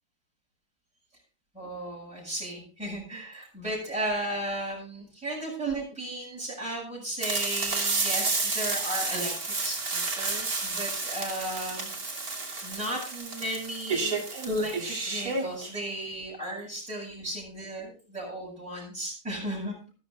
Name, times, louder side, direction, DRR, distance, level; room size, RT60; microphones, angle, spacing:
voice 1, 1.5-11.9 12.6-19.9, right 1 dB, 5° right, -6 dB, 7.9 m, -35 dB
sound 1, 7.2-15.7, right 3 dB, 50° right, 3.3 m, -31 dB
14.0 x 13.5 x 4.1 m, 0.34 s
omnidirectional pair, 2.1 m